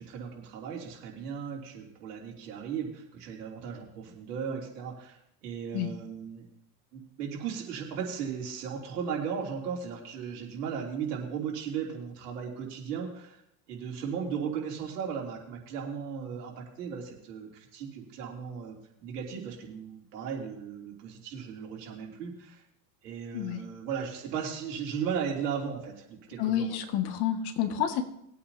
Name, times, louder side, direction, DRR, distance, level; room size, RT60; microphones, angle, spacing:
voice 1, 0.0-6.5 6.9-13.4 13.7-18.8 19.0-22.6 23.0-26.8, right 7 dB, 85° right, -1 dB, 3.2 m, -36 dB
voice 2, 26.4-28.0, left 10 dB, 55° left, 5 dB, 1.9 m, -29 dB
21.0 x 8.5 x 2.8 m, 0.78 s
supercardioid pair, 95°, 46 cm